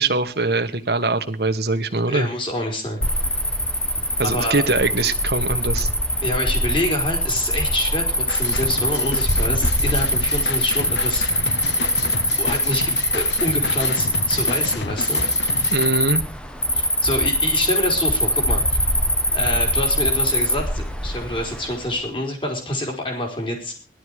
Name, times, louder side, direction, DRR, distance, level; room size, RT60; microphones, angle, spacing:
voice 1, 0.0-2.3 4.2-5.9 15.7-16.2, right 3 dB, 65° right, 7 dB, 1.5 m, -22 dB
voice 2, 2.1-3.0 4.2-4.6 6.2-11.3 12.4-15.3 16.7-18.9 19.3-23.7, left 1 dB, 30° left, 2 dB, 4.2 m, -27 dB
Cricket, 3.0-21.9, left 1 dB, 5° left, 1.1 m, -22 dB
sound 1, 8.3-15.9, left 4 dB, 75° left, 0.8 m, -31 dB
17.5 x 12.0 x 4.9 m, 0.36 s
head